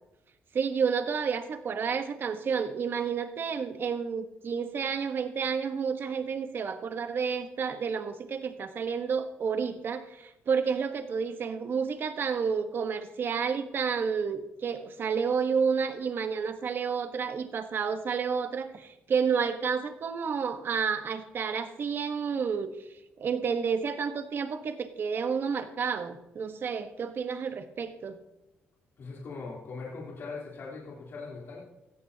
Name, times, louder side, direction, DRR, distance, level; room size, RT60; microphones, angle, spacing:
voice 1, 0.5-22.7 23.2-28.2, right 6 dB, 55° right, 9 dB, 1.1 m, -30 dB
voice 2, 29.0-31.6, left 4 dB, 60° left, -5 dB, 3.4 m, -40 dB
16.5 x 14.0 x 2.8 m, 0.95 s
cardioid pair, 80°, 4 cm